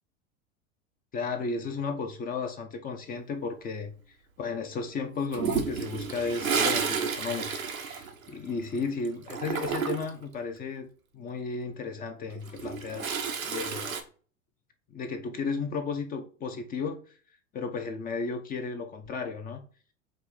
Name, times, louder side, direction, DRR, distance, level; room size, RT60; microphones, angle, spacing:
voice 1, 1.1-3.9 4.4-7.5 7.8-10.9 11.1-14.0 14.9-17.0 17.5-19.6, left 4 dB, 25° left, 0.5 m, -34 dB
Toilet flush, 5.3-8.8 9.0-10.2 12.3-14.0, right 6 dB, 90° right, 0.8 m, -31 dB
4.8 x 2.7 x 3.7 m
figure-of-eight pair, 85°, 40 cm